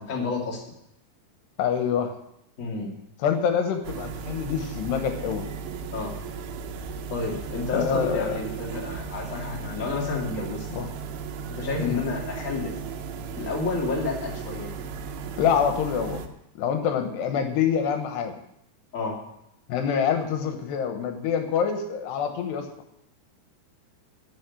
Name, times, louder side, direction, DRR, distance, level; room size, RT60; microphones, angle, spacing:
voice 1, 0.1-0.7 2.6-3.0 5.9-6.1 7.1-10.7 11.5-12.7 13.4-14.7 18.9-19.2, left 3 dB, 25° left, -2 dB, 2.3 m, -30 dB
voice 2, 1.6-2.1 3.2-5.5 7.7-8.3 10.7-10.9 11.8-12.0 15.4-16.2 16.6-18.3 19.7-22.7, left 7 dB, 85° left, 6 dB, 3.3 m, -26 dB
sound 1, 3.8-16.3, right 6 dB, 75° right, 2.7 m, -36 dB
11.5 x 6.5 x 9.4 m, 0.78 s
omnidirectional pair, 4.7 m